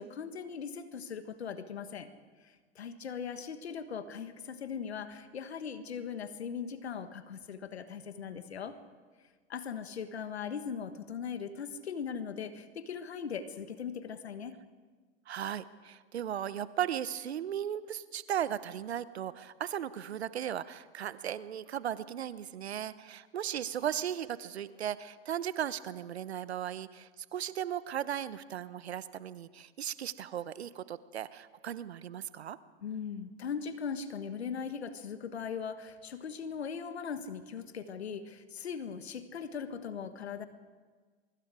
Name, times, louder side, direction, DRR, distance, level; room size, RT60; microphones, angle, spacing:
voice 1, 0.0-2.1 2.4-8.8 9.5-14.6 32.8-40.5, left 6 dB, 90° left, 10 dB, 1.6 m, -39 dB
voice 2, 15.3-32.6, right 10 dB, 85° right, 15 dB, 1.0 m, -36 dB
24.0 x 24.0 x 5.0 m, 1.5 s
hypercardioid pair, 90°, 31 cm